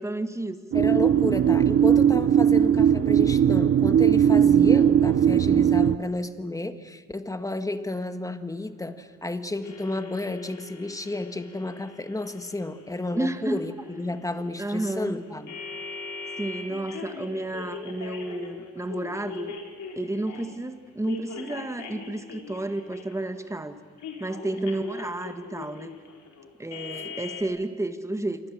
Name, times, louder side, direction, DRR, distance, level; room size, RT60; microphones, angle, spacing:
voice 1, 0.0-0.6 13.2-13.6 14.6-15.2 16.4-19.6 20.0-23.8 24.2-25.9 26.6-28.4, right 2 dB, 10° right, 8 dB, 1.9 m, -31 dB
voice 2, 0.7-15.5 24.6-24.7, left 2 dB, 10° left, 9 dB, 1.7 m, -32 dB
sound 1, 0.7-6.0, right 9 dB, 45° right, 0.7 m, -19 dB
sound 2, 9.6-20.6 21.0-23.4 24.0-27.4, left 5 dB, 70° left, 4.6 m, -41 dB
27.0 x 24.0 x 7.6 m, 1.5 s
cardioid pair, 90°, 30 cm